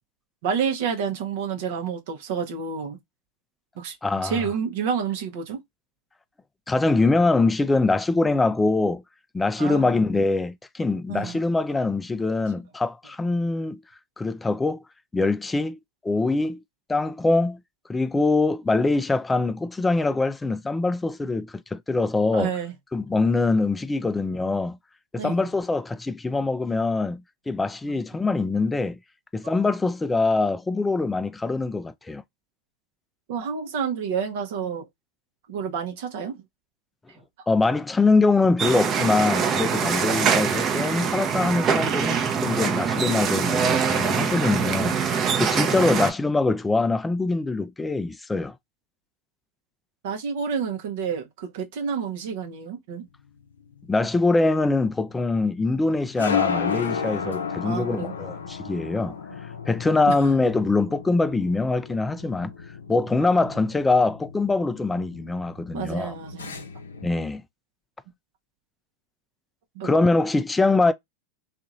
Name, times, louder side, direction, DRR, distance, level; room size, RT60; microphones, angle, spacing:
voice 1, 0.4-3.0 3.8-4.0 4.2-5.6 9.6-10.0 11.1-11.4 22.3-22.7 25.2-25.5 27.9-28.0 29.4-29.5 33.3-34.9 35.5-36.4 37.1-37.2 50.0-53.1 57.6-58.1 60.1-60.2 63.2-63.6 65.7-66.7 69.7-70.0, right 6 dB, 65° right, 0.8 m, -29 dB
voice 2, 4.0-4.4 6.7-9.0 9.3-13.8 14.2-14.8 15.1-15.8 16.0-16.6 16.9-17.6 17.9-22.5 22.9-24.8 25.1-29.0 29.3-32.2 37.5-45.0 45.4-48.5 53.9-59.1 59.7-62.5 62.9-66.1 67.0-67.4 69.8-70.9, left 3 dB, 10° left, 0.4 m, -23 dB
sound 1, 38.6-46.1, right 6 dB, 35° right, 0.7 m, -24 dB
sound 2, 53.2-67.2, left 6 dB, 90° left, 0.5 m, -34 dB
2.9 x 2.5 x 2.5 m
hypercardioid pair, 95°, 0 cm